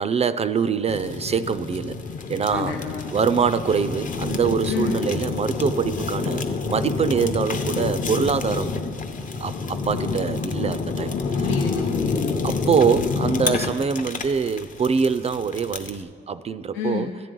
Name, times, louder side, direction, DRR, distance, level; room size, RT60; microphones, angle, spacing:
voice 1, 0.0-2.0 2.3-2.8 3.1-8.8 9.4-11.5 12.4-17.1, right 6 dB, 30° right, 13 dB, 0.3 m, -24 dB
Fire, 0.9-16.0, left 4 dB, 40° left, 0.7 m, -28 dB
voice 2, 2.5-3.1 4.7-5.1 11.4-12.4 16.7-17.2, left 6 dB, 80° left, 1 dB, 0.8 m, -29 dB
13.5 x 9.3 x 3.8 m, 2.1 s
cardioid pair, 90°, 20 cm